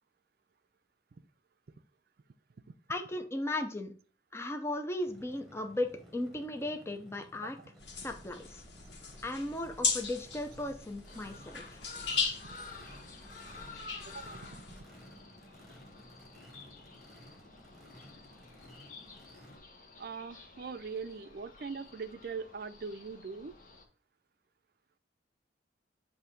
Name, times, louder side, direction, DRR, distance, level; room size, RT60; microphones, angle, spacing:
voice 1, 2.9-3.9 4.3-7.6 8.0-8.6 9.2-11.8, left 1 dB, 15° left, 0.6 m, -36 dB
Race car auto racing / Idling / Accelerating revving vroom, 5.1-19.6, equal, ahead, 1.5 m, -56 dB
sound 1, 7.8-14.8, left 5 dB, 80° left, 1.4 m, -38 dB
sound 2, 11.0-23.8, left 3 dB, 50° left, 1.2 m, -52 dB
voice 2, 14.1-14.8 20.0-23.5, right 5 dB, 60° right, 0.5 m, -41 dB
8.2 x 2.8 x 5.1 m
head